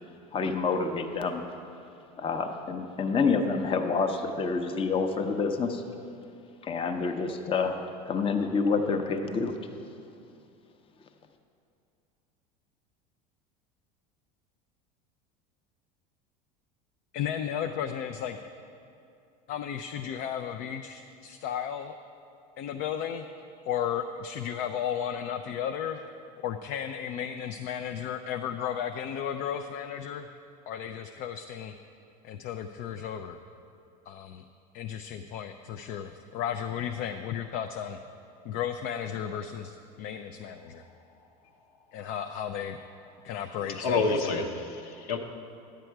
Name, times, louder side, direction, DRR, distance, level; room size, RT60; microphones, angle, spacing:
voice 1, 0.3-1.4 2.2-5.8 6.6-9.5, left 4 dB, 30° left, 5 dB, 0.7 m, -28 dB
voice 2, 17.1-18.4 19.5-21.9 22.6-23.3 23.7-26.0 26.4-30.3 30.7-31.8 32.2-33.4 34.1-34.4 34.7-38.0 38.4-40.8 41.9-42.8 43.2-44.4, left 9 dB, 55° left, 6 dB, 0.5 m, -34 dB
voice 3, 43.6-45.2, left 3 dB, 75° left, 3 dB, 1.0 m, -29 dB
10.5 x 7.6 x 4.6 m, 2.6 s
hypercardioid pair, 95°, 19 cm